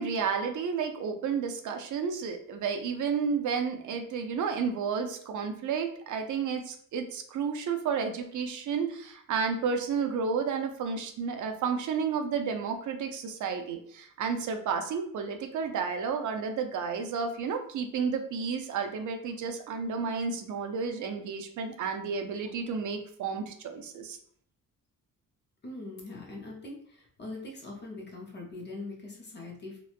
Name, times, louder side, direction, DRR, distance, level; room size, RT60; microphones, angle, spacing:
voice 1, 0.0-24.2, right 6 dB, 65° right, 5 dB, 0.4 m, -31 dB
voice 2, 25.6-29.8, left 2 dB, 35° left, 0 dB, 0.5 m, -42 dB
3.0 x 2.1 x 2.4 m, 0.62 s
wide cardioid pair, 170°, 33 cm